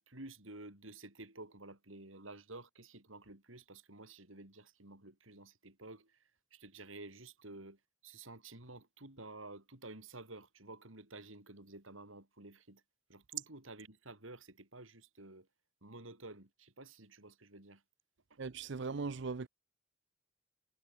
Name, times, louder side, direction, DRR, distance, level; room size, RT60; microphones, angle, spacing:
voice 1, 0.0-12.8 13.1-15.5 15.8-17.8 18.3-18.4, right 2 dB, 85° right, 5.5 m, -52 dB
voice 2, 18.4-19.5, right 4 dB, 60° right, 0.6 m, -39 dB
head